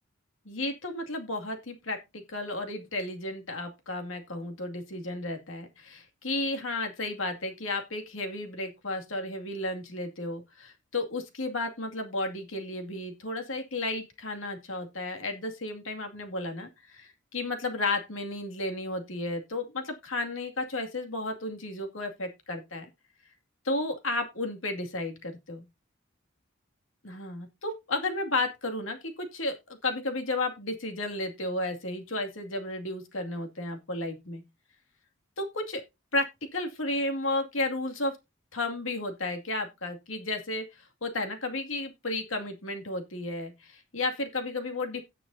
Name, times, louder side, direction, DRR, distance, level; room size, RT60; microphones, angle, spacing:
voice 1, 0.5-22.9 23.6-25.6 27.0-29.6 29.8-34.4 35.4-35.8 36.1-36.2 36.5-38.1 38.5-45.0, left 2 dB, 80° left, 2.3 m, -33 dB
17.0 x 6.8 x 2.7 m
head